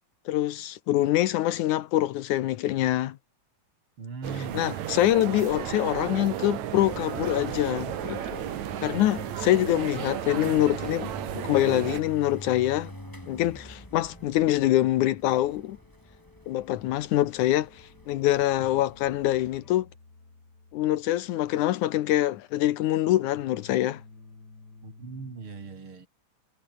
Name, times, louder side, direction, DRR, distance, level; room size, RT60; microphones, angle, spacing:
voice 1, 0.3-3.2 4.5-8.4 8.8-12.9 13.3-15.8 16.5-19.9 20.7-24.0, left 14 dB, 85° left, 2.4 m, -25 dB
voice 2, 4.0-4.6 9.1-9.3 24.8-26.1, right 4 dB, 45° right, 4.9 m, -39 dB
sound 1, 4.2-12.0, right 11 dB, 70° right, 2.6 m, -34 dB
sound 2, 6.7-19.6, equal, 5° left, 6.2 m, -45 dB
sound 3, 11.3-25.4, left 3 dB, 30° left, 4.8 m, -54 dB
omnidirectional pair, 3.4 m